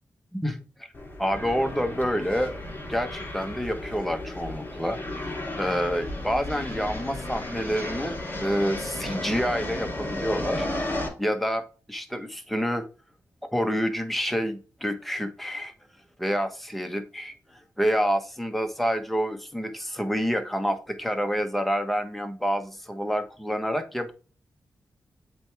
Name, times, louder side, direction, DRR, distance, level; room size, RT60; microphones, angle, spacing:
sound 1, 0.9-11.1, left 1 dB, 30° left, 3.0 m, -34 dB
voice 1, 1.2-2.5 2.9-5.0 5.6-10.7 11.2-12.8 13.5-15.7 16.2-17.3 17.8-24.1, equal, ahead, 6 dB, 1.2 m, -28 dB
8.0 x 3.4 x 3.4 m, 0.36 s
cardioid pair, 70°, 7 cm